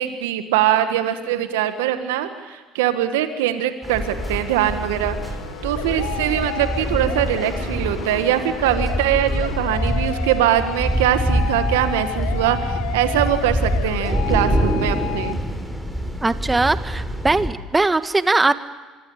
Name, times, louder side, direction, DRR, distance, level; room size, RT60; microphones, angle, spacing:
voice 1, 0.0-5.2 5.6-15.4, right 11 dB, 80° right, 9 dB, 1.6 m, -22 dB
sound 1, 3.8-17.5, equal, 5° right, 6.1 m, -25 dB
sound 2, 4.0-15.3, left 13 dB, 80° left, 1.5 m, -33 dB
voice 2, 16.2-18.7, right 3 dB, 20° right, 11 dB, 1.6 m, -20 dB
25.0 x 24.5 x 8.7 m, 1.3 s
hypercardioid pair, 65°, 0 cm